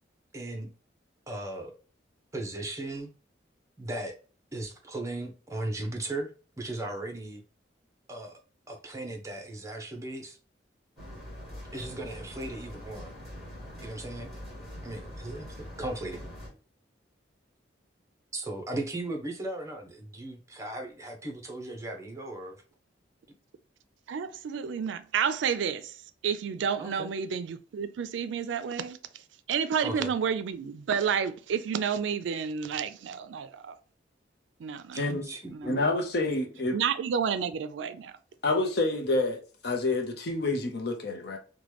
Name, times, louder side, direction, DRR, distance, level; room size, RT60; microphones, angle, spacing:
voice 1, 0.3-0.7 1.3-1.7 2.3-3.1 3.8-4.1 4.5-6.3 6.6-7.4 8.1-8.4 8.7-10.4 11.7-13.1 13.8-14.3 14.8-16.3 18.3-22.6 26.8-27.1 29.8-30.1 34.9-35.9, right 2 dB, 15° right, 0.6 m, -37 dB
sound 1, 11.0-16.5, equal, ahead, 1.5 m, -43 dB
voice 2, 24.1-26.0 26.2-29.0 29.5-33.7 34.6-35.0 35.5-35.9 36.7-38.1, right 7 dB, 85° right, 0.4 m, -30 dB
voice 3, 35.7-36.8 38.4-41.4, left 2 dB, 60° left, 0.6 m, -28 dB
3.0 x 2.2 x 3.2 m
head